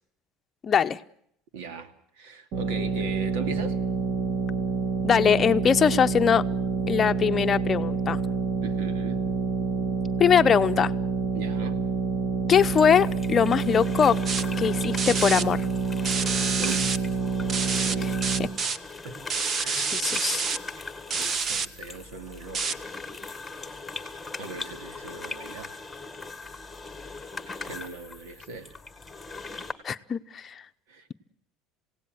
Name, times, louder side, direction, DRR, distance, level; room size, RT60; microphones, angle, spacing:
voice 1, 0.6-1.0 5.0-6.4 6.9-8.2 10.2-10.9 12.5-14.2 14.6-15.6 18.4-18.5 19.7-20.4 29.8-30.6, left 7 dB, 25° left, 8 dB, 0.8 m, -22 dB
voice 2, 1.5-3.8 8.6-9.3 11.3-11.8 16.6-16.9 17.6-18.1 19.0-19.2 19.6-19.9 21.2-22.8 24.4-25.8 26.6-26.7 27.6-28.8 30.9-31.1, right 5 dB, 85° right, 10 dB, 2.5 m, -39 dB
sound 1, 2.5-18.5, right 4 dB, 55° right, 3.3 m, -28 dB
sound 2, 12.5-29.7, left 3 dB, 5° left, 1.9 m, -40 dB
sound 3, 14.3-14.4 15.0-15.4 16.1-17.0 17.5-17.9 18.2-18.8 19.3-20.6 21.1-21.7 22.5-22.7, right 5 dB, 30° right, 0.9 m, -28 dB
27.5 x 17.5 x 7.9 m, 0.71 s
cardioid pair, 150°, 0 cm